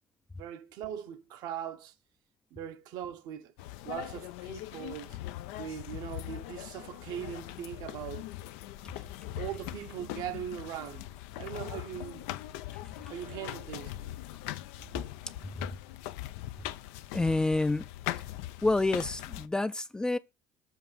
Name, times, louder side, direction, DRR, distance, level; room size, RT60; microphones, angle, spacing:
voice 1, 0.4-1.9 2.5-3.5 3.8-5.2 5.6-8.3 9.4-12.3 13.1-13.9, right 10 dB, 70° right, 0.8 m, -40 dB
sound 1, 3.6-19.5, left 15 dB, 90° left, 0.4 m, -41 dB
voice 2, 17.1-17.9 18.6-20.2, left 2 dB, 10° left, 0.3 m, -28 dB
7.2 x 2.6 x 5.6 m
supercardioid pair, 100°, 7 cm